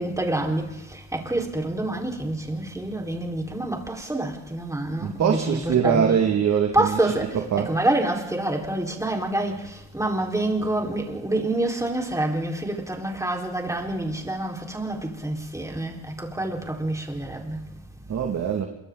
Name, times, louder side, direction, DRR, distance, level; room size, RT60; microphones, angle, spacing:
voice 1, 0.0-6.2 6.7-17.6, right 1 dB, 10° right, 4.6 m, -27 dB
voice 2, 5.0-7.7 18.1-18.7, right 7 dB, 65° right, 2.3 m, -23 dB
27.5 x 23.5 x 4.0 m
cardioid pair, 90°, 30 cm